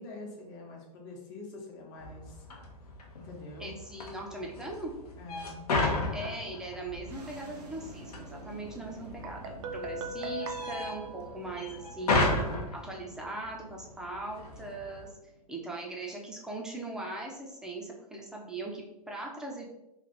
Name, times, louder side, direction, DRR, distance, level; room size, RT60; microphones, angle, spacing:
voice 1, 0.0-2.4 3.1-3.8 5.2-5.6, left 2 dB, 40° left, -1 dB, 1.1 m, -45 dB
sound 1, 2.0-15.1, left 2 dB, 70° left, 0.9 m, -35 dB
voice 2, 3.6-4.9 6.1-12.4 12.7-15.1 15.5-19.7, right 2 dB, 5° right, -1 dB, 0.6 m, -40 dB
sound 2, 6.8-16.0, right 2 dB, 90° right, 0.8 m, -51 dB
Guitar, 9.2-12.0, right 2 dB, 55° right, 0.6 m, -39 dB
3.3 x 2.4 x 3.8 m, 0.88 s
hypercardioid pair, 125°, 20 cm